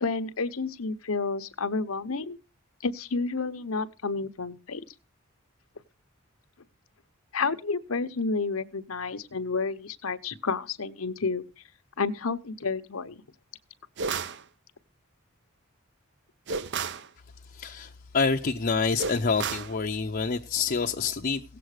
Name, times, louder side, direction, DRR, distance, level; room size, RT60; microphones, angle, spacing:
voice 1, 0.0-2.4 2.8-4.8 7.3-11.4 12.0-13.2, left 4 dB, 85° left, 1.0 m, -30 dB
sound 1, 14.0-14.4 16.5-17.1 19.0-19.7, right 5 dB, 55° right, 0.7 m, -32 dB
voice 2, 17.5-21.4, left 4 dB, 45° left, 0.6 m, -27 dB
16.5 x 7.8 x 4.9 m
head